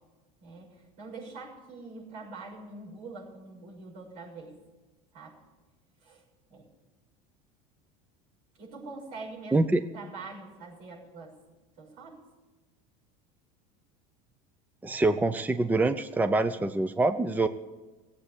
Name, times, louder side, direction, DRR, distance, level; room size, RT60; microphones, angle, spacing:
voice 1, 0.4-4.6 5.1-5.4 6.0-6.2 6.5-6.6 8.6-9.7 9.9-11.3 11.8-12.2, right 3 dB, 75° right, -2 dB, 6.2 m, -44 dB
voice 2, 9.5-9.8 14.8-17.5, right 2 dB, 10° right, 11 dB, 0.6 m, -25 dB
16.5 x 8.4 x 8.5 m, 1.2 s
supercardioid pair, 110°, 19 cm